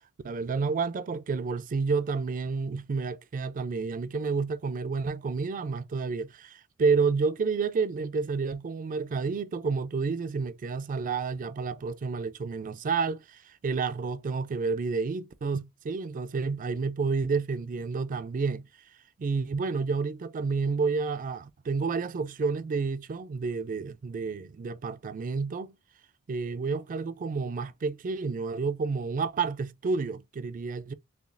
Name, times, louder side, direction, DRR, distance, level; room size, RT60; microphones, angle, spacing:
voice 1, 0.2-18.7 19.2-25.7 26.3-30.9, right 4 dB, 35° right, 0.4 m, -30 dB
6.8 x 2.3 x 2.4 m
head